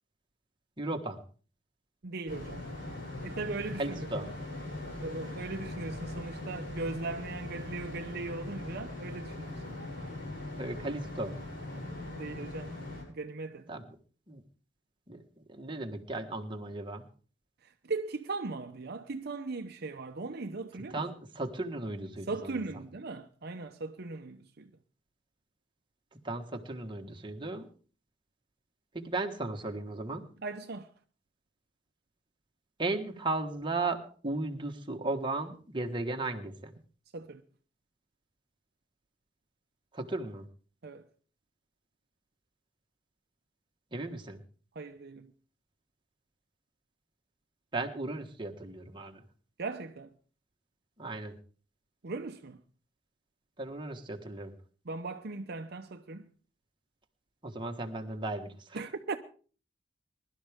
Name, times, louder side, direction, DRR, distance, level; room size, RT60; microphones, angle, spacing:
voice 1, 0.8-1.2 3.8-4.3 10.6-11.3 13.7-13.9 14.3-14.4 15.1-15.2 15.5-17.1 20.9-22.6 26.2-27.7 28.9-30.3 32.8-36.8 39.9-40.5 43.9-44.4 47.7-49.2 51.0-51.3 53.6-54.5 57.4-58.8, right 2 dB, 25° right, 1.5 m, -36 dB
voice 2, 2.0-2.7 3.2-4.1 5.0-9.8 12.1-12.7 13.1-13.7 17.6-21.0 22.3-24.7 30.4-30.9 37.1-37.4 40.8-41.1 44.7-45.3 49.6-50.1 52.0-52.6 54.9-56.3 58.7-59.1, right 3 dB, 55° right, 0.8 m, -38 dB
sound 1, 2.3-13.0, left 2 dB, 55° left, 7.3 m, -41 dB
21.5 x 12.0 x 3.6 m
head